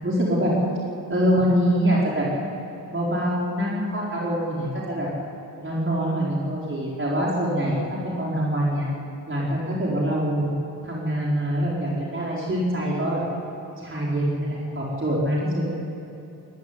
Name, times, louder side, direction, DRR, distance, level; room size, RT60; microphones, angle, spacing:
voice 1, 0.0-0.5 1.1-2.3 2.9-5.1 5.6-8.9 9.3-10.5 10.8-13.2 13.8-15.6, equal, 30° right, -5 dB, 5.0 m, -24 dB
18.0 x 16.0 x 9.9 m, 2.8 s
cardioid pair, 65°, 39 cm